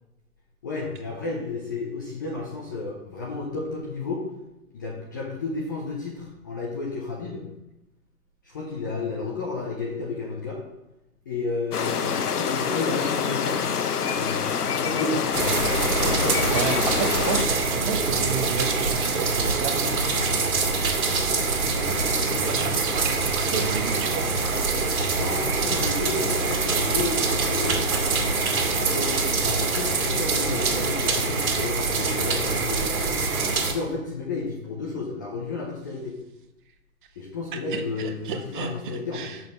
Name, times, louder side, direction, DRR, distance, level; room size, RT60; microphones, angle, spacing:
voice 1, 0.6-4.2 4.7-7.4 8.4-10.6 11.3-13.7 14.1-15.6 15.9-16.8 21.6-22.7 25.1-28.3 28.8-33.2 33.7-36.1 37.2-39.3, left 3 dB, 15° left, -2 dB, 0.4 m, -32 dB
sound 1, 11.7-17.5, left 7 dB, 75° left, 0.9 m, -26 dB
sound 2, 15.3-33.7, right 4 dB, 65° right, 2.0 m, -24 dB
voice 2, 16.5-19.9 22.5-24.3 37.7-39.4, right 6 dB, 35° right, 6 dB, 0.9 m, -31 dB
6.8 x 6.5 x 5.3 m, 0.96 s
hypercardioid pair, 130°, 46 cm